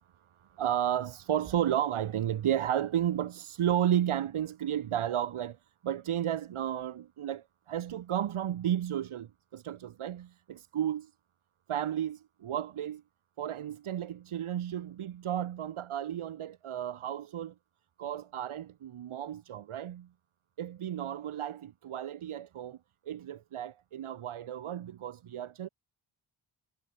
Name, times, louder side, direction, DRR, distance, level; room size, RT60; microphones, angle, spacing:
voice 1, 0.5-5.6 5.8-11.1 11.7-13.0 13.4-17.5 18.0-20.1 20.6-22.8 23.1-25.7, right 10 dB, 85° right, 2.2 m, -33 dB
cardioid pair, 95°, 49 cm